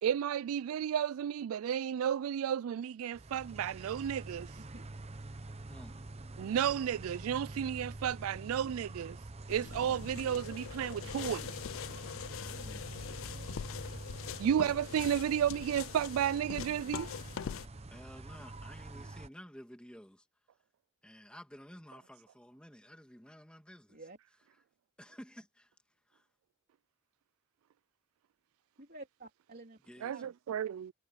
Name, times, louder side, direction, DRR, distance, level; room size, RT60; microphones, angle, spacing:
voice 1, 0.0-4.6 6.4-9.2 9.5-11.6 14.4-17.1 30.0-30.9, right 9 dB, 90° right, 0.3 m, -32 dB
sound 1, 3.1-19.3, right 2 dB, 30° right, 0.8 m, -46 dB
voice 2, 5.7-6.1 12.5-13.0 17.9-20.3 21.0-24.0 25.0-25.7 26.1-26.3 29.9-30.1, equal, 5° left, 2.0 m, -52 dB
sound 2, 9.5-17.7, left 8 dB, 70° left, 0.4 m, -43 dB
voice 3, 28.8-29.8 30.1-30.3, right 2 dB, 45° right, 3.7 m, -51 dB
head